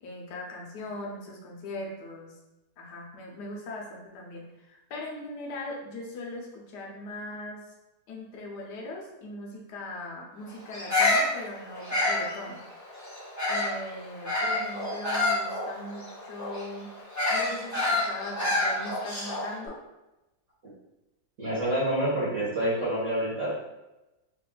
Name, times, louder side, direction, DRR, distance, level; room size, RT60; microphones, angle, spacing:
voice 1, 0.0-2.3 2.8-7.6 8.1-12.6 13.5-16.9 17.3-19.8, left 1 dB, 70° left, -1 dB, 1.3 m, -40 dB
Bird vocalization bird call bird song, 10.7-13.8 14.2-19.5, left 2 dB, 25° left, 0.4 m, -28 dB
voice 2, 21.4-23.5, right 1 dB, 50° right, -9 dB, 1.2 m, -27 dB
3.3 x 2.5 x 3.8 m, 0.99 s
omnidirectional pair, 2.0 m